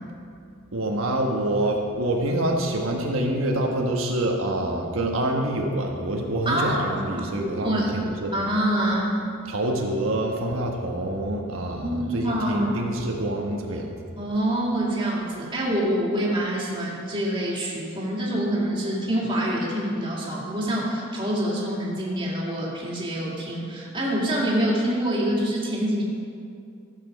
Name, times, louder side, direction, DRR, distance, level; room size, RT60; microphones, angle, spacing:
voice 1, 0.7-8.3 9.5-14.0, right 1 dB, 90° right, 0 dB, 1.2 m, -26 dB
voice 2, 7.6-7.9 8.3-9.1 11.8-12.7 14.2-26.0, right 1 dB, 25° right, -5 dB, 2.3 m, -26 dB
14.5 x 7.0 x 5.2 m, 2.5 s
head